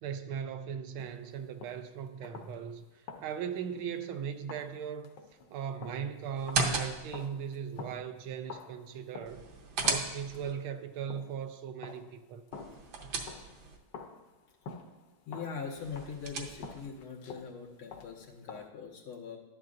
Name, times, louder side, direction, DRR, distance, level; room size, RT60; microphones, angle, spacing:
voice 1, 0.0-5.1 5.5-9.4 9.8-12.4, right 7 dB, 85° right, 1.5 m, -38 dB
sound 1, 1.0-1.9 2.2-2.8 3.1-4.1 4.5-9.6 9.8-11.5 11.8-13.7 13.9-18.7, left 5 dB, 65° left, 1.3 m, -48 dB
sound 2, 6.4-7.3 9.3-10.5 12.5-13.8 15.8-16.9, right 4 dB, 60° right, 1.4 m, -35 dB
voice 2, 15.3-19.4, left 6 dB, 90° left, 2.1 m, -42 dB
11.5 x 10.5 x 2.5 m
omnidirectional pair, 2.3 m